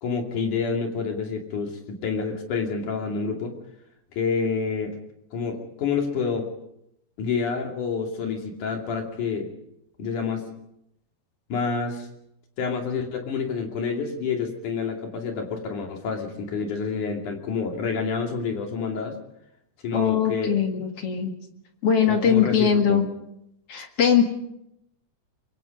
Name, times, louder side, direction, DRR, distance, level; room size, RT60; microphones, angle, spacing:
voice 1, 0.0-3.5 4.1-5.0 5.3-6.5 7.2-9.5 10.0-10.4 11.5-12.1 12.6-19.2 19.8-20.5 22.1-23.0, left 5 dB, 75° left, 2 dB, 4.1 m, -28 dB
voice 2, 19.9-21.3 21.8-23.1 23.7-24.2, left 7 dB, 50° left, 4 dB, 2.7 m, -21 dB
25.0 x 23.0 x 5.3 m, 0.80 s
omnidirectional pair, 3.6 m